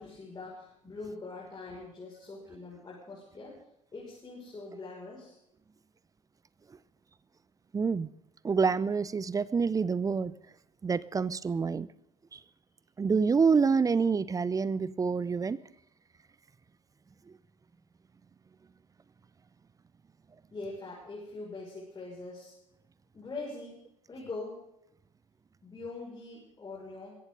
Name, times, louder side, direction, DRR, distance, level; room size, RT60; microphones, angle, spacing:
voice 1, 0.0-3.6 3.9-5.3 20.5-22.5 23.1-24.7 25.6-27.1, left 3 dB, 25° left, -4 dB, 6.2 m, -43 dB
voice 2, 7.7-8.1 8.4-10.3 10.8-11.9 12.3-12.4 13.0-15.6, right 5 dB, 20° right, 19 dB, 0.6 m, -27 dB
21.5 x 16.5 x 4.0 m, 0.79 s
figure-of-eight pair, 60°, 17 cm